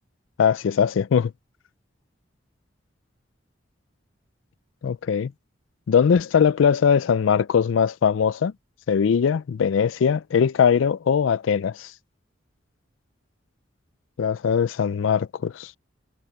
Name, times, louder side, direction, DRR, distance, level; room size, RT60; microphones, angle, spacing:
voice 1, 0.4-1.3 4.8-5.3 5.9-8.5 8.9-11.9 14.2-15.7, left 7 dB, 90° left, 0.4 m, -21 dB
head